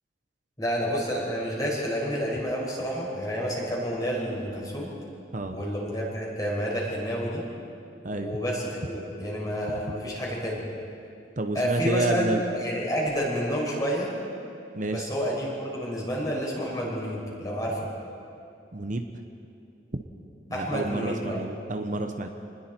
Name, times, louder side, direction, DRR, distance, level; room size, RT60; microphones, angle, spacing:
voice 1, 0.6-4.9 5.5-7.4 8.2-10.6 11.5-14.1 14.8-17.9 20.5-21.5, equal, 20° left, -4 dB, 5.5 m, -29 dB
voice 2, 8.0-8.4 9.7-9.9 11.4-12.4 14.7-15.1 18.7-19.1 19.9-20.0 20.5-22.3, right 2 dB, 45° right, 5 dB, 0.9 m, -29 dB
29.0 x 20.5 x 4.5 m, 2.6 s
head